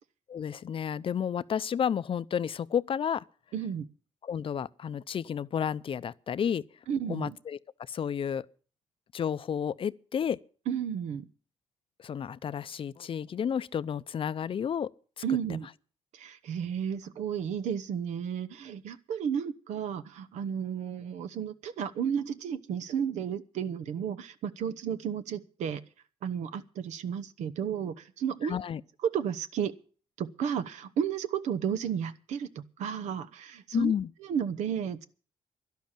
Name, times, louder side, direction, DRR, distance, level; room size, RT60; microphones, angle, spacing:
voice 1, 0.3-3.2 4.2-6.6 7.1-7.6 7.9-8.5 9.1-10.4 12.0-14.9 15.2-15.3 28.4-28.8 33.7-34.1, left 8 dB, 50° left, 0.6 m, -31 dB
voice 2, 3.5-3.9 6.9-7.4 10.7-11.3 15.2-15.7 16.1-25.8 26.2-28.6 29.1-29.7 30.2-33.9 34.2-35.1, right 8 dB, 85° right, 1.0 m, -33 dB
11.5 x 11.5 x 7.3 m
cardioid pair, 85°, 12 cm